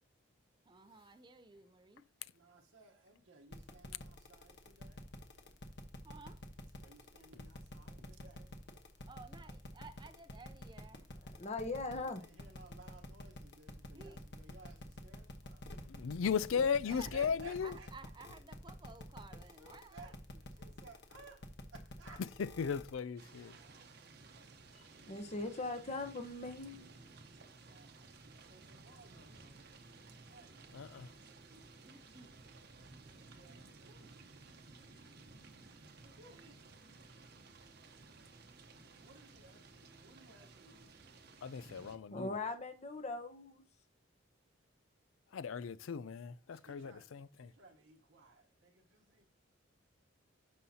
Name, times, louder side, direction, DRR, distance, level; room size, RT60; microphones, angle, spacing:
voice 1, 0.7-2.1 6.0-6.4 9.1-11.1 13.9-14.2 16.2-16.3 16.9-17.1 17.6-20.1 31.6-32.3, right 4 dB, 20° right, 0.5 m, -55 dB
voice 2, 2.3-5.0 6.8-8.5 11.9-15.9 16.8-17.9 19.6-21.5 21.7-22.2 23.3-23.9 24.9-25.3 27.4-30.6 31.3-32.2 32.8-34.4 36.0-36.8 39.0-41.4 46.5-47.1 47.4-49.3, right 3 dB, 70° right, 1.1 m, -60 dB
sound 1, 3.5-23.0, left 1 dB, 55° left, 1.1 m, -49 dB
voice 3, 11.2-12.2 25.1-26.9 42.1-43.6, left 3 dB, 35° left, 0.9 m, -40 dB
voice 4, 15.9-17.8 22.4-23.5 30.7-31.1 41.4-42.3 45.3-47.5, left 6 dB, 75° left, 0.4 m, -36 dB
sound 2, 23.2-42.0, right 3 dB, 50° right, 0.9 m, -57 dB
11.5 x 5.5 x 2.8 m
head